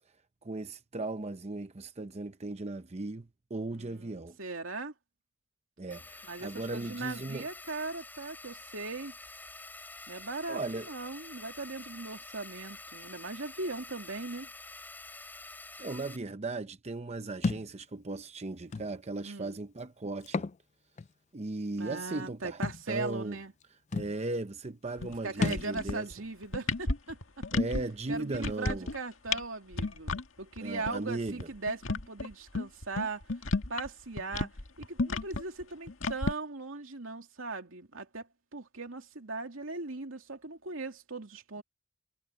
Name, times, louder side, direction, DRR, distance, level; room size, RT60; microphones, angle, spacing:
voice 1, 0.4-4.4 5.8-7.5 10.5-10.9 15.8-20.5 21.3-22.6 22.9-23.4 23.9-26.1 27.5-28.9 30.6-31.5, right 2 dB, 35° right, 0.7 m, -37 dB
voice 2, 3.7-4.9 6.3-9.1 10.1-14.5 19.2-19.6 21.8-23.5 25.2-27.4 28.1-33.2 33.7-34.5 34.8-41.6, right 3 dB, 85° right, 2.7 m, -39 dB
sound 1, 5.9-16.2, left 2 dB, 10° left, 4.0 m, -48 dB
Thump thud, 17.4-17.7 18.7-18.9 20.2-20.6 21.0-21.1 22.6-22.8 23.6-23.7 23.9-24.1 25.4-25.7, left 3 dB, 35° left, 0.4 m, -31 dB
sound 2, 25.0-25.1 25.4-26.1 26.4-27.8 28.1-29.0 29.3-29.4 29.7-30.2 30.6-30.7 30.9-31.0 31.3-33.9 34.2-36.3, left 3 dB, 75° left, 1.9 m, -32 dB
head